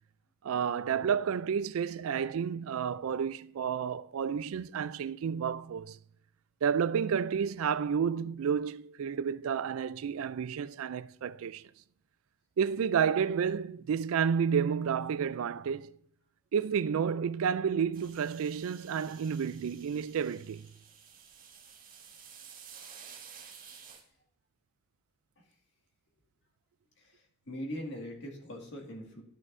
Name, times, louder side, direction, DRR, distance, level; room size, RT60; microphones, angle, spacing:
voice 1, 0.4-6.0 6.6-11.6 12.6-15.9 16.5-20.7, right 7 dB, 80° right, 0.4 m, -30 dB
sound 1, 17.9-24.0, right 7 dB, 45° right, 1.7 m, -52 dB
voice 2, 27.0-29.2, equal, 60° left, 2.0 m, -41 dB
13.0 x 6.1 x 2.6 m
head